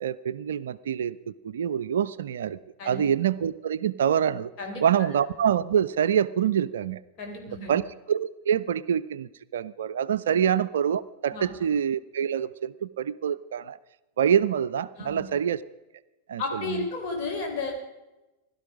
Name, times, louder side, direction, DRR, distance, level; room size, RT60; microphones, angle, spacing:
voice 1, 0.0-1.2 1.4-2.6 2.8-4.5 4.8-7.0 7.5-7.8 8.1-13.8 14.2-15.6 16.3-16.9, right 8 dB, 60° right, 15 dB, 0.4 m, -26 dB
voice 2, 2.8-3.1 4.6-4.8 7.2-7.8 10.3-10.4 11.3-11.5 15.0-15.3 16.4-17.7, left 3 dB, 40° left, 2 dB, 4.0 m, -33 dB
16.5 x 12.0 x 4.9 m, 1.0 s
figure-of-eight pair, 90°, 0 cm